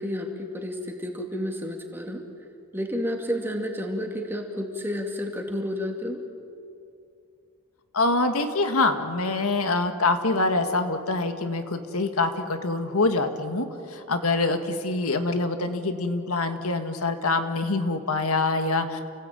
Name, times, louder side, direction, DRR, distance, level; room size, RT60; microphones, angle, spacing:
voice 1, 0.0-2.2 2.7-6.2 14.5-14.8, left 1 dB, 10° right, 2 dB, 2.3 m, -31 dB
voice 2, 7.9-19.0, left 3 dB, 85° left, 7 dB, 1.8 m, -25 dB
29.5 x 17.0 x 9.2 m, 2.5 s
head